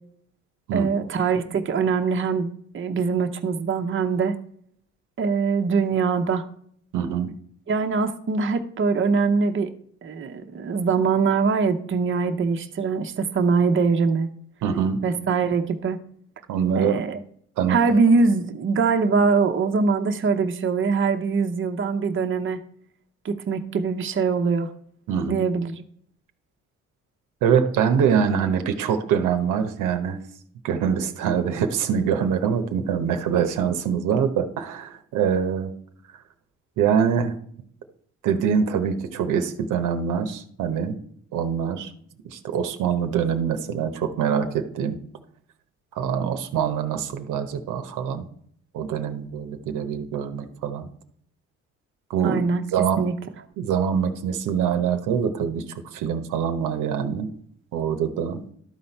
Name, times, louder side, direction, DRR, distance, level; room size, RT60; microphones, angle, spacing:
voice 1, 0.7-4.4 5.2-6.4 7.7-9.7 10.0-14.3 15.0-16.0 16.7-17.2 17.7-22.6 23.2-24.7 25.3-25.8 52.2-52.6 53.0-53.1, right 5 dB, 40° right, 5 dB, 0.9 m, -23 dB
voice 2, 6.9-7.3 14.6-15.0 16.5-17.0 17.6-17.8 25.1-25.4 27.4-30.2 30.6-35.7 36.8-37.4 38.2-41.0 41.3-41.9 42.2-45.0 45.9-48.3 48.7-50.9 52.1-52.4 52.7-53.1 53.6-57.3 57.7-58.4, right 7 dB, 90° right, 7 dB, 0.9 m, -24 dB
12.0 x 4.2 x 4.4 m, 0.64 s
cardioid pair, 90°, 30 cm